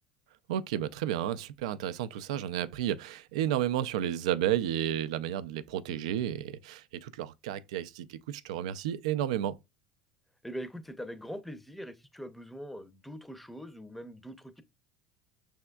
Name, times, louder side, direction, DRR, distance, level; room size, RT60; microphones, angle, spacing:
voice 1, 0.5-9.6, right 11 dB, 90° right, 0.3 m, -32 dB
voice 2, 10.4-14.6, equal, 5° left, 0.6 m, -42 dB
6.0 x 3.4 x 2.2 m
supercardioid pair, 120°, 3 cm